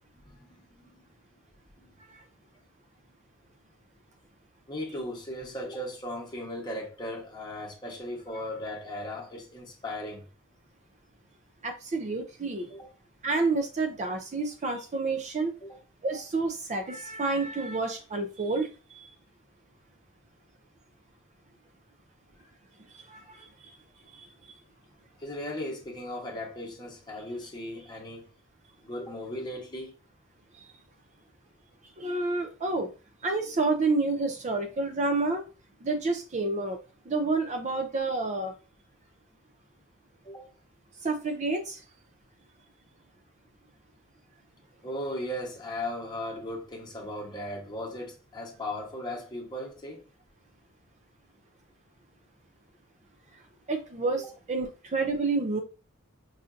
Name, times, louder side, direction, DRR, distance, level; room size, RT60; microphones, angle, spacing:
voice 1, 0.3-0.9 4.7-10.2 12.7-13.0 14.0-14.1 15.6-15.8 22.4-22.5 25.2-28.3 28.8-29.9 40.2-40.5 44.8-50.0 54.2-54.3, left 1 dB, 20° left, 1.1 m, -37 dB
voice 2, 11.6-12.7 13.2-15.5 16.0-19.1 22.9-23.8 24.1-24.3 30.6-30.7 32.0-32.9 33.2-35.4 35.8-36.8 37.1-38.5 41.0-41.8 53.7-55.6, right 3 dB, 35° right, 0.5 m, -29 dB
5.5 x 2.6 x 2.5 m
head